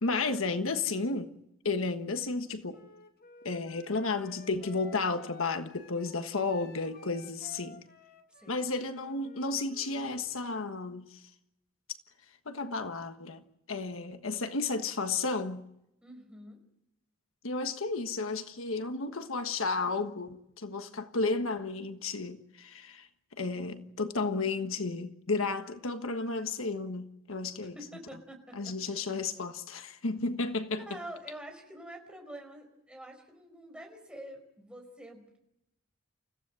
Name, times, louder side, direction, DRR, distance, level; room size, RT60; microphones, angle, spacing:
voice 1, 0.0-1.3 1.6-2.8 3.4-7.8 8.5-11.2 12.4-13.4 13.7-15.7 17.4-23.1 23.4-27.7 28.5-30.9, left 3 dB, 75° left, 1.4 m, -33 dB
Wind instrument woodwind instrument, 2.7-10.2, left 4 dB, 50° left, 2.2 m, -54 dB
voice 2, 8.3-8.7 16.0-16.6 27.6-28.8 30.8-35.4, right 1 dB, 5° right, 5.0 m, -47 dB
29.0 x 15.5 x 7.7 m
head